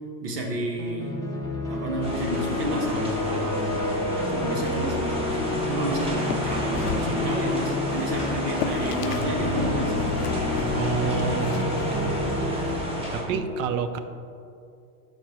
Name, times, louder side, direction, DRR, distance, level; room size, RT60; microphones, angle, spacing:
voice 1, 0.2-1.2 1.7-10.5 13.3-13.5, right 1 dB, 85° right, 1 dB, 1.6 m, -31 dB
sound 1, 0.8-12.8, left 2 dB, 10° left, 0.6 m, -29 dB
sound 2, 2.0-13.2, left 1 dB, 10° right, 1.4 m, -31 dB
sound 3, 6.0-9.4 9.6-12.8, left 10 dB, 75° left, 0.6 m, -39 dB
voice 2, 10.7-12.7 13.1-14.0, right 6 dB, 55° right, 10 dB, 0.7 m, -29 dB
11.5 x 4.6 x 3.1 m, 2.5 s
hypercardioid pair, 125°, 47 cm